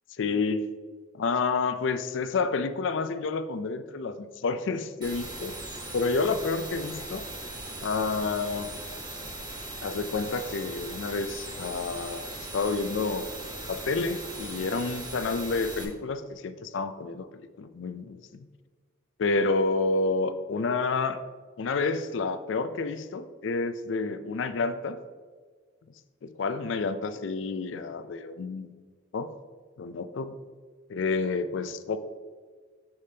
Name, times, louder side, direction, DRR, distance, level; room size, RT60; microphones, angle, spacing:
voice 1, 0.2-0.7 1.1-5.5 5.9-7.3 7.8-8.7 9.8-13.3 13.6-18.5 19.2-21.2 21.6-25.0 26.2-28.7 29.1-29.3 29.8-30.3 30.9-32.0, left 4 dB, 70° left, 11 dB, 0.4 m, -29 dB
sound 1, 5.0-15.8, right 2 dB, 25° right, 1.0 m, -39 dB
6.9 x 6.6 x 2.8 m, 1.5 s
head